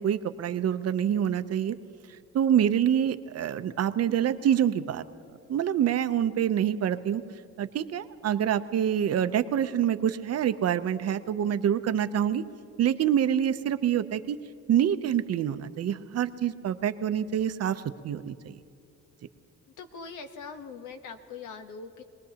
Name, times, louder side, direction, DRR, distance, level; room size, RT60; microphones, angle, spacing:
voice 1, 0.0-1.7 2.3-5.0 5.5-7.2 7.6-12.4 12.8-14.4 14.7-18.6, right 9 dB, 55° right, 11 dB, 0.7 m, -26 dB
voice 2, 19.8-22.0, left 5 dB, 85° left, 8 dB, 1.1 m, -42 dB
25.5 x 19.0 x 2.9 m, 2.5 s
cardioid pair, 90°, 30 cm